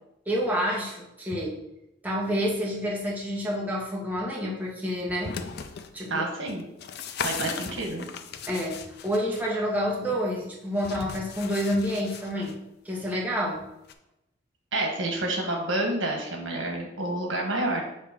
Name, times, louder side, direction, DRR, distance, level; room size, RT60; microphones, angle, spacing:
voice 1, 0.3-1.5 2.0-5.3 5.9-6.3 8.5-12.6 12.8-13.6, equal, 10° right, -4 dB, 1.3 m, -28 dB
sound 1, 5.0-5.9 6.5-9.4 10.8-12.5 13.9-14.0, left 6 dB, 60° left, 0.5 m, -37 dB
voice 2, 6.1-6.6 7.2-8.1 14.7-17.8, right 2 dB, 90° right, 1 dB, 1.4 m, -29 dB
7.4 x 2.8 x 5.2 m, 0.87 s
head